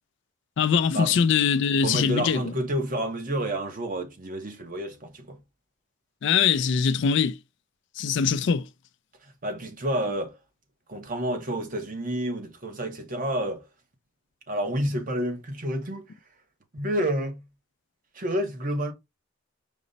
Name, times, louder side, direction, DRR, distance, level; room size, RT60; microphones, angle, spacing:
voice 1, 0.6-2.4 6.2-7.4 8.0-8.6, left 6 dB, 60° left, 0.3 m, -22 dB
voice 2, 1.8-5.4 9.2-10.4 10.9-13.6 14.5-16.1 16.7-17.4 18.1-18.9, right 1 dB, 45° right, 0.9 m, -29 dB
5.0 x 2.1 x 3.9 m
head